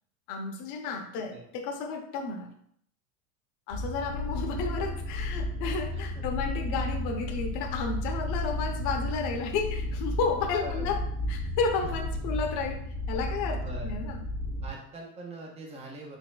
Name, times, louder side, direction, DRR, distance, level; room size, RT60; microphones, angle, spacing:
voice 1, 0.3-2.5 3.7-14.2, left 5 dB, 40° left, 4 dB, 0.7 m, -32 dB
sound 1, 3.7-14.7, left 1 dB, 85° left, 1.4 m, -33 dB
voice 2, 10.6-11.0 11.8-12.2 13.6-13.9 14.6-16.2, right 2 dB, 15° right, 0 dB, 0.4 m, -43 dB
4.2 x 3.7 x 2.3 m, 0.68 s
supercardioid pair, 135°, 46 cm